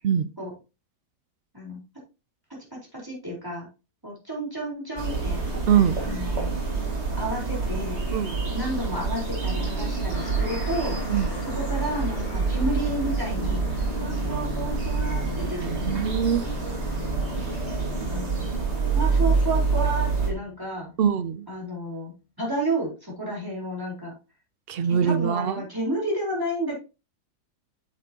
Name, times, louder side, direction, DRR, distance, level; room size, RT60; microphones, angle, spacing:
voice 1, 2.7-3.7 4.0-5.4 6.0-6.5 7.2-8.0 8.5-11.0 11.4-16.0 16.7-17.0 18.0-18.4 18.9-20.9 21.5-24.1 24.9-26.7, right 1 dB, 10° right, -3 dB, 3.9 m, -31 dB
sound 1, 5.0-20.3, right 4 dB, 40° right, 2.2 m, -27 dB
voice 2, 5.7-6.0 8.1-8.4 11.1-11.3 15.7-16.4 21.0-21.5 24.7-25.5, right 8 dB, 85° right, 12 dB, 0.5 m, -23 dB
sound 2, 10.1-21.1, left 5 dB, 60° left, 2.0 m, -41 dB
8.0 x 7.6 x 2.8 m, 0.29 s
omnidirectional pair, 1.8 m